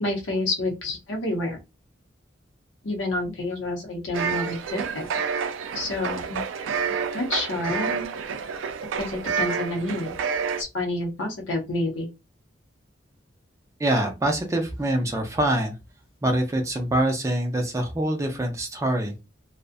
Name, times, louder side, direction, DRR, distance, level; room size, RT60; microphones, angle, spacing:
voice 1, 0.0-1.6 2.8-5.1 5.7-6.4 7.1-8.1 9.0-10.2 10.6-12.1, left 2 dB, 80° left, 1 dB, 0.7 m, -28 dB
sound 1, 4.1-10.6, right 6 dB, 85° right, 0.3 m, -29 dB
voice 2, 13.8-15.7 16.2-19.2, right 1 dB, 15° right, 3 dB, 0.4 m, -25 dB
2.4 x 2.0 x 2.5 m, 0.25 s
head